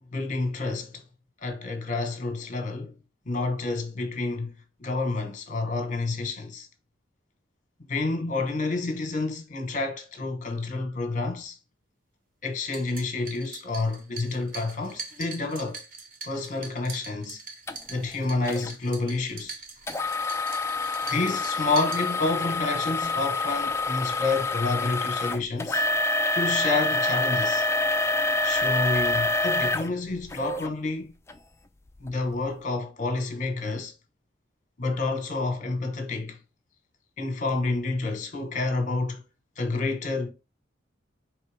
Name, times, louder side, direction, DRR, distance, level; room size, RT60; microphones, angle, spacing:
voice 1, 0.1-1.0 1.4-2.9 3.3-4.5 4.8-6.7 7.9-11.6 12.4-15.8 16.2-17.4 17.9-19.6 21.1-25.9 26.3-27.7 28.4-31.1 32.0-33.9 34.8-36.4 37.2-39.2 39.6-40.3, left 3 dB, 40° left, 1.1 m, -29 dB
mixing ice drink, 12.6-22.6, right 4 dB, 50° right, 1.1 m, -43 dB
sound 1, 17.7-17.8 18.5-18.7 19.9-30.7 31.3-31.4 32.0-32.1, left 2 dB, 15° left, 0.4 m, -27 dB
4.5 x 3.3 x 3.3 m
head